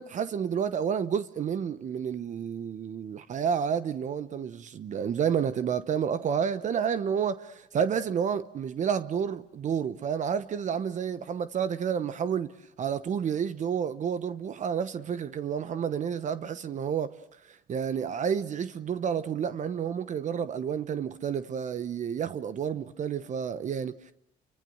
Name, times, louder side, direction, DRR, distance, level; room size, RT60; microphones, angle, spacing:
voice 1, 0.0-12.5 12.8-17.2 17.7-24.1, right 7 dB, 45° right, 1.0 m, -30 dB
29.0 x 24.5 x 7.9 m
cardioid pair, 110°, 17 cm